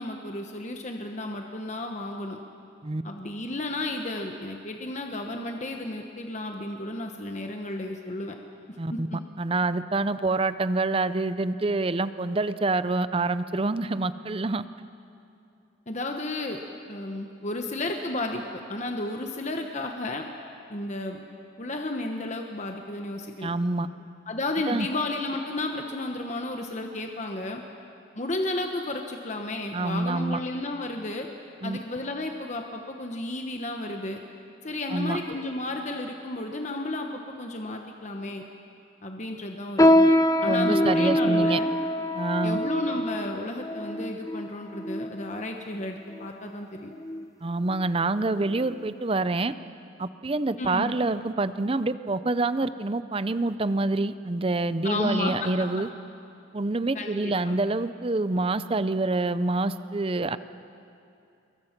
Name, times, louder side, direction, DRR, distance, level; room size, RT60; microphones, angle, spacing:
voice 1, 0.0-2.4 3.0-8.3 8.9-9.2 15.9-16.6 16.9-20.2 20.7-21.2 21.6-23.5 24.3-27.6 28.2-31.3 31.6-34.2 34.6-38.4 39.0-40.1 40.4-41.7 42.4-46.9 50.6-50.9 54.8-55.5 56.9-57.6, left 2 dB, 35° left, 3 dB, 1.1 m, -33 dB
voice 2, 9.4-14.6 23.4-23.9 24.7-24.9 29.7-30.4 31.6-31.8 34.9-35.2 40.4-41.6 42.1-42.6 47.4-49.5 50.0-55.9 56.5-60.4, right 2 dB, 25° right, 13 dB, 0.5 m, -26 dB
sound 1, 39.8-45.5 46.1-46.3 47.0-47.3 47.7-47.9 48.6-48.7, left 1 dB, 15° left, 0.6 m, -24 dB
27.5 x 22.0 x 6.0 m, 2.6 s
head